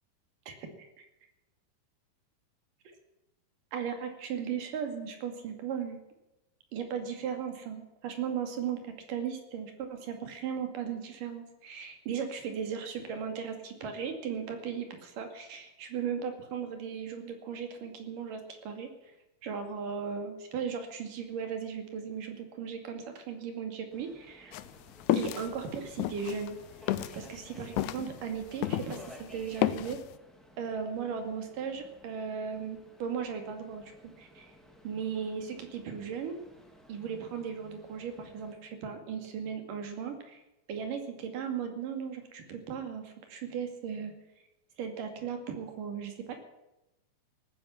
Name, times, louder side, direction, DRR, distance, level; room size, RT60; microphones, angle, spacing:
voice 1, 0.5-1.1 3.7-6.0 6.7-19.1 19.4-24.6 25.1-26.6 27.1-30.0 30.6-33.9 34.2-34.5 34.8-36.4 36.9-40.4 40.7-44.1 44.8-46.5, right 7 dB, 70° right, 6 dB, 3.9 m, -37 dB
Subway metro underground, 23.9-38.5, equal, ahead, 2.0 m, -55 dB
sound 1, 24.5-29.1 29.4-30.0, left 13 dB, 80° left, 1.6 m, -31 dB
18.5 x 10.0 x 7.3 m, 0.95 s
omnidirectional pair, 4.1 m